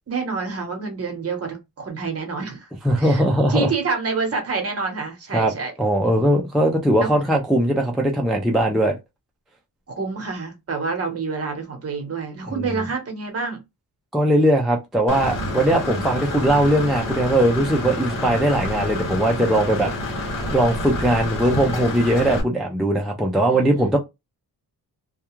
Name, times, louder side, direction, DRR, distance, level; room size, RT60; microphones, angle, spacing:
voice 1, 0.1-2.7 3.0-3.2 3.5-5.7 6.1-6.2 7.0-7.1 9.9-13.6 23.4-24.0, right 4 dB, 40° right, 0.9 m, -28 dB
voice 2, 2.8-3.7 5.3-5.5 5.8-9.0 12.5-12.8 14.1-19.9 20.5-24.0, right 1 dB, ahead, 0.3 m, -20 dB
Engine / Mechanisms, 15.1-22.4, left 1 dB, 55° left, 1.1 m, -28 dB
2.3 x 2.3 x 2.9 m
wide cardioid pair, 145°, 38 cm